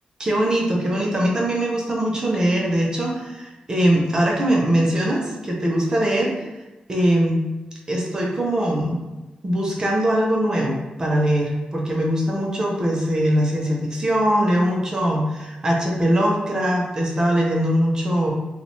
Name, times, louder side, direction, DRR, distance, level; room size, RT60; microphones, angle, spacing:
voice 1, 0.2-6.5 6.9-7.4 7.9-9.0 9.4-18.3, right 1 dB, 25° right, -1 dB, 0.4 m, -21 dB
2.7 x 2.0 x 3.0 m, 1.1 s
wide cardioid pair, 160°, 3 cm